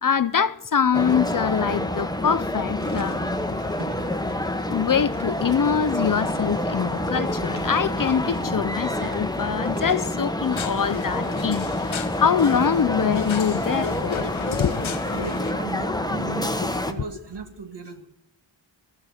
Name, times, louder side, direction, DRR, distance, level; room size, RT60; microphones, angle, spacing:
voice 1, 0.0-3.2 4.7-14.9 17.0-17.1, left 7 dB, 45° left, 0.6 m, -24 dB
sound 1, 0.9-16.9, left 1 dB, 10° left, 1.3 m, -27 dB
sound 2, 2.8-9.9, right 2 dB, 35° right, 2.4 m, -40 dB
sound 3, 10.5-15.5, left 7 dB, 75° left, 1.0 m, -35 dB
voice 2, 15.1-18.1, right 4 dB, 55° right, 2.3 m, -37 dB
16.0 x 13.5 x 6.5 m
cardioid pair, 55°, 48 cm